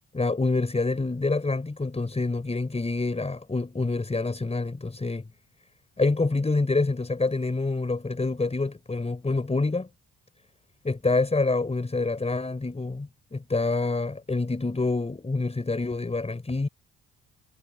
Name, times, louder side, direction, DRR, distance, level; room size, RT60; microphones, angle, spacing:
voice 1, 0.1-5.2 6.0-9.9 10.8-16.7, left 3 dB, 20° left, 5.2 m, -27 dB
cardioid pair, 90°, 30 cm